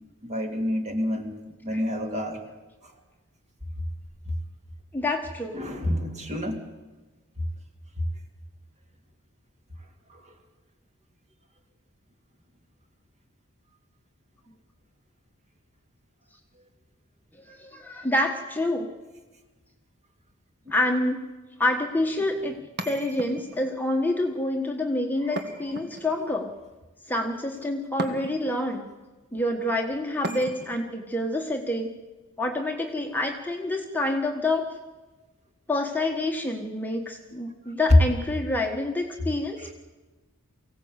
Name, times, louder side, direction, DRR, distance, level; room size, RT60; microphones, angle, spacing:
voice 1, 0.2-1.3 1.6-2.4 5.5-6.6 10.1-10.2 25.2-25.4 39.6-39.7, equal, 30° right, 3 dB, 2.9 m, -29 dB
voice 2, 4.9-5.6 17.5-18.9 20.7-21.2 21.6-22.5 22.8-26.5 27.1-28.9 29.3-31.9 32.4-34.7 35.7-39.7, left 1 dB, 10° left, 1 dB, 1.5 m, -27 dB
sound 1, 22.8-23.7 25.4-26.3 28.0-28.6 30.2-30.9, right 1 dB, 50° right, 1.9 m, -36 dB
24.0 x 16.5 x 8.2 m, 1.2 s
head